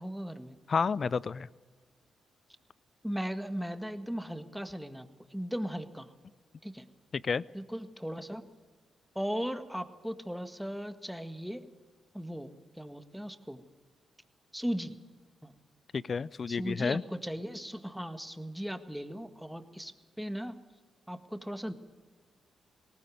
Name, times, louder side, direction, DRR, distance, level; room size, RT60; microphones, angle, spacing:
voice 1, 0.0-0.6 3.0-6.1 6.6-6.9 7.5-8.4 9.2-11.7 12.1-13.6 14.5-15.0 15.4-15.5 16.5-20.5 21.1-21.7, equal, ahead, 9 dB, 1.8 m, -37 dB
voice 2, 0.7-1.5 7.1-7.4 15.9-17.0, left 5 dB, 50° left, 21 dB, 0.5 m, -30 dB
19.0 x 18.0 x 7.8 m, 1.4 s
hypercardioid pair, 45°, 0 cm